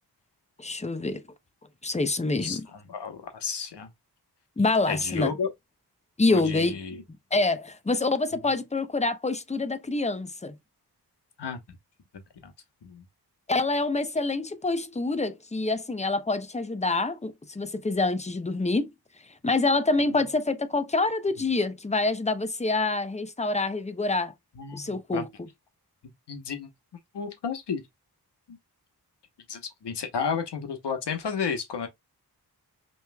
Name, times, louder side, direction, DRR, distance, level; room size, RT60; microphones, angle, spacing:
voice 1, 0.6-1.2 1.8-2.7 4.6-5.3 6.2-6.8 7.3-10.6 13.5-18.9 19.4-24.3 24.7-25.5, left 3 dB, 15° left, 0.7 m, -26 dB
voice 2, 2.4-3.9 4.9-5.5 6.3-7.0 11.4-11.6 12.4-12.5 12.8-13.0 20.0-20.2 24.6-25.2 26.3-26.7 27.1-27.8 28.5-28.6 29.5-31.9, left 6 dB, 90° left, 1.1 m, -32 dB
5.4 x 3.2 x 2.2 m
cardioid pair, 65°, 40 cm